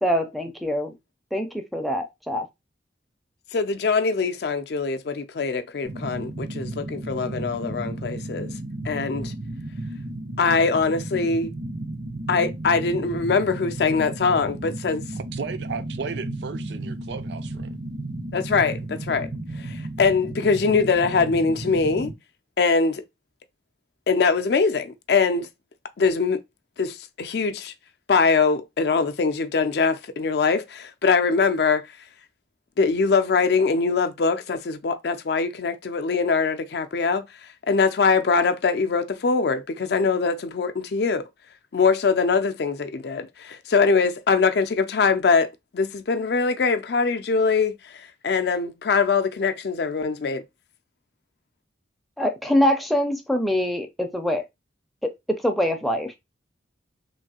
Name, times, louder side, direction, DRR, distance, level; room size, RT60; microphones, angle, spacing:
voice 1, 0.0-0.9 1.3-2.5 52.2-54.4 55.0-56.1, equal, ahead, 0.4 m, -24 dB
voice 2, 3.5-8.5 8.8-9.3 10.4-11.5 12.3-15.0 18.3-19.3 19.6-22.1 22.6-23.0 24.1-25.5 26.0-26.4 26.8-27.7 28.1-31.9 32.8-37.2 37.7-41.3 41.7-50.4, left 4 dB, 60° left, 0.4 m, -22 dB
sound 1, 5.8-22.1, right 2 dB, 85° right, 1.4 m, -33 dB
voice 3, 15.2-17.8, right 5 dB, 65° right, 0.4 m, -35 dB
3.1 x 2.6 x 2.8 m
head